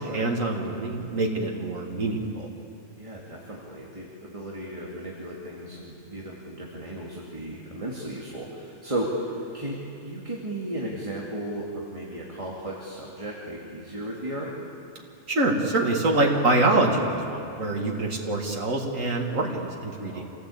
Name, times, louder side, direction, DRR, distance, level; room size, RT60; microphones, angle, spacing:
voice 1, 0.0-2.5 15.3-20.2, right 2 dB, 85° right, 0 dB, 2.6 m, -25 dB
voice 2, 3.0-14.5 20.0-20.2, right 1 dB, 25° right, -3 dB, 2.5 m, -35 dB
27.5 x 17.0 x 8.6 m, 2.8 s
omnidirectional pair, 1.3 m